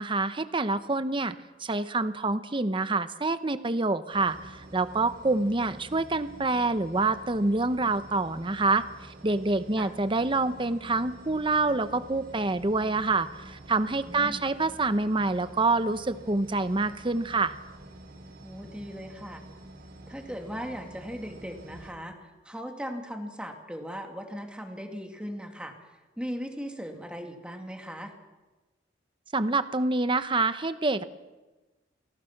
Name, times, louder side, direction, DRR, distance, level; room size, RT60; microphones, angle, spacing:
voice 1, 0.0-8.8 9.2-17.5 29.3-31.0, right 3 dB, 25° right, 12 dB, 1.0 m, -27 dB
sound 1, 4.1-21.9, right 1 dB, 55° right, 6.2 m, -48 dB
voice 2, 14.0-14.5 18.4-19.4 20.1-28.1, equal, 5° right, 3 dB, 2.5 m, -38 dB
28.0 x 18.5 x 6.0 m, 1.2 s
head